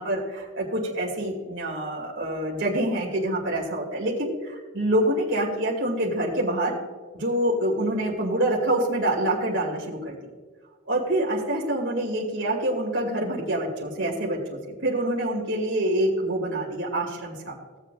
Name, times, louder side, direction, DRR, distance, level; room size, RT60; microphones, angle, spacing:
voice 1, 0.0-6.7 7.1-10.1 10.9-17.5, right 1 dB, 60° right, -3 dB, 2.4 m, -26 dB
18.5 x 7.7 x 2.5 m, 1.4 s
head